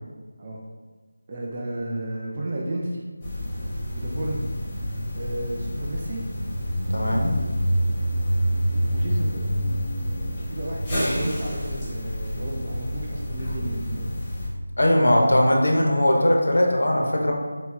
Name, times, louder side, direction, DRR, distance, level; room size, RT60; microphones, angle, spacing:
voice 1, 1.3-3.0 3.9-4.5 5.1-6.2 8.9-9.4 10.4-14.1, right 1 dB, 30° right, -2 dB, 0.4 m, -32 dB
sound 1, 3.2-14.5, equal, 20° left, 0.8 m, -27 dB
voice 2, 6.9-7.3 14.8-17.3, left 1 dB, 80° left, 0 dB, 0.6 m, -19 dB
4.2 x 2.8 x 2.3 m, 1.4 s
figure-of-eight pair, 165°, 0 cm